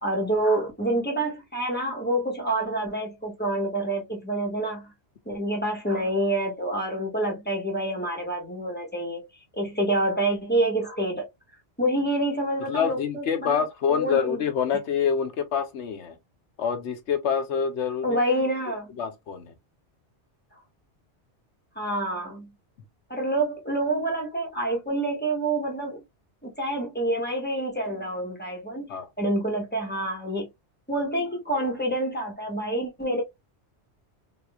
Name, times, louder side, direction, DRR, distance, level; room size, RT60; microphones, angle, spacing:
voice 1, 0.0-4.9 5.2-9.2 9.5-11.3 11.8-13.6 13.9-14.4 18.0-18.9 21.7-22.5 23.1-26.0 26.4-30.5 30.9-33.2, right 1 dB, 10° left, 1.5 m, -27 dB
voice 2, 12.7-16.2 16.6-18.2 19.0-19.5 28.9-29.1, left 7 dB, 80° left, 1.1 m, -26 dB
3.6 x 3.0 x 2.4 m
omnidirectional pair, 1.2 m